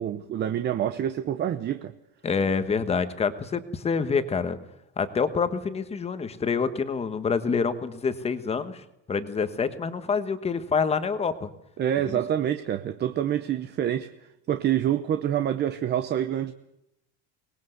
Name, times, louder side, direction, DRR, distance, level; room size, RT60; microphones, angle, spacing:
voice 1, 0.0-1.9 11.8-14.1 14.5-16.5, right 10 dB, 25° right, 0.8 m, -27 dB
voice 2, 2.2-4.6 5.0-11.5 12.1-12.2, left 5 dB, 15° left, 1.3 m, -27 dB
23.5 x 20.0 x 8.0 m
cardioid pair, 180°, 38 cm